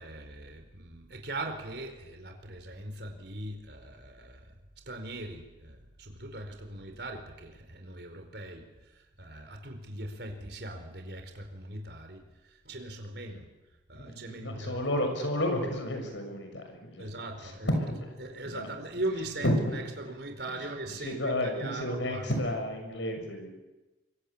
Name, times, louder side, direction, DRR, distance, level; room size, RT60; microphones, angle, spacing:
voice 1, 0.0-4.5 4.9-14.8 17.0-17.7 18.2-22.3, right 2 dB, 60° right, 4 dB, 4.4 m, -40 dB
voice 2, 13.9-17.0 17.4-18.2 18.5-18.7 19.4-19.9 20.5-20.7 21.0-23.5, left 1 dB, 80° left, 5 dB, 6.7 m, -31 dB
25.5 x 24.0 x 8.6 m, 1.1 s
head